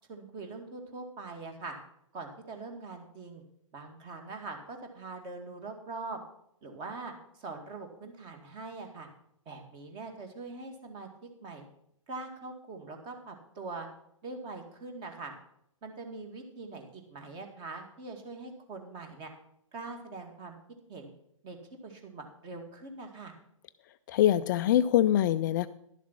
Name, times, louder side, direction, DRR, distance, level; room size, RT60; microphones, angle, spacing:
voice 1, 0.1-1.8 2.1-3.4 3.7-6.2 6.6-9.1 9.5-11.1 11.4-11.6 12.1-13.9 14.2-15.4 15.8-19.3 19.7-20.6 20.9-21.1 21.4-21.6 21.8-23.3, right 3 dB, 25° right, 4 dB, 2.2 m, -42 dB
voice 2, 24.1-25.7, left 12 dB, 35° left, 11 dB, 0.4 m, -24 dB
11.5 x 7.2 x 6.0 m, 0.73 s
figure-of-eight pair, 130°, 17 cm